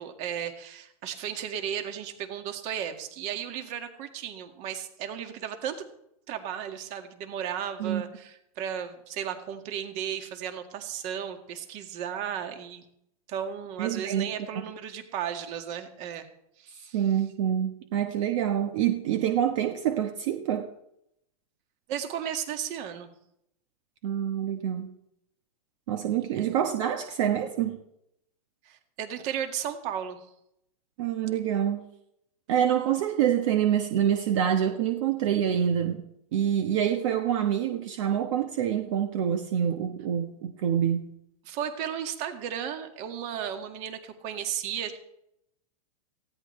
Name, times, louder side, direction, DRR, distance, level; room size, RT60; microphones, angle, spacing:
voice 1, 0.0-5.8 6.3-12.8 13.3-16.3 16.6-17.0 21.9-23.1 26.4-26.6 28.7-30.3 41.5-45.0, right 9 dB, 35° right, 6 dB, 1.9 m, -35 dB
voice 2, 13.8-14.3 14.6-14.7 16.9-20.7 24.0-24.9 25.9-27.8 31.0-31.8 32.5-36.1 36.3-41.1, right 9 dB, 55° right, 5 dB, 1.3 m, -26 dB
19.0 x 15.5 x 3.3 m, 0.77 s
supercardioid pair, 150°, 19 cm